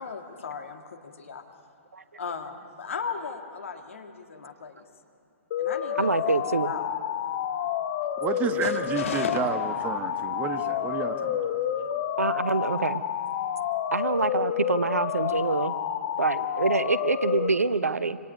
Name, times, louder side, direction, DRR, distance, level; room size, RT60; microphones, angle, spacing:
voice 1, 0.0-1.4 2.2-4.8 5.6-6.9 8.6-9.4, left 5 dB, 60° left, 5 dB, 2.0 m, -36 dB
sound 1, 5.5-17.5, left 10 dB, 40° left, 1.4 m, -29 dB
voice 2, 6.0-6.7 12.2-13.0 13.9-15.8 16.2-18.2, right 3 dB, 80° right, 15 dB, 0.8 m, -26 dB
voice 3, 8.2-11.4, right 7 dB, 20° right, 9 dB, 1.2 m, -31 dB
26.0 x 26.0 x 5.4 m, 2.7 s
figure-of-eight pair, 115°, 8 cm